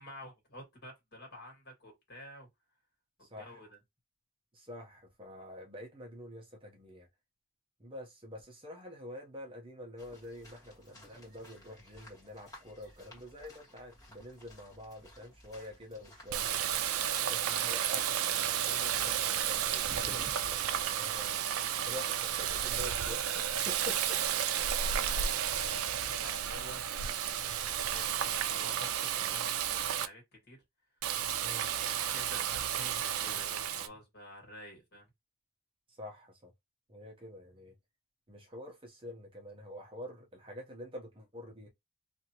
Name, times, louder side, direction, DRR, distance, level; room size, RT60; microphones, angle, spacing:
voice 1, 0.0-2.5 3.2-3.8 25.0-30.6 31.8-35.1, equal, 45° left, 1.8 m, -50 dB
voice 2, 3.2-3.7 4.5-7.1 7.8-16.6 17.3-21.4 21.8-24.2 24.9-25.2 31.4-31.8 35.9-36.5 36.9-37.7 38.3-41.7, left 1 dB, 25° right, 0.8 m, -47 dB
sound 1, 10.0-20.6, equal, 15° left, 1.5 m, -54 dB
Water tap faucet, 16.3-30.1 31.0-33.9, right 9 dB, 70° right, 0.4 m, -32 dB
2.8 x 2.5 x 2.8 m
head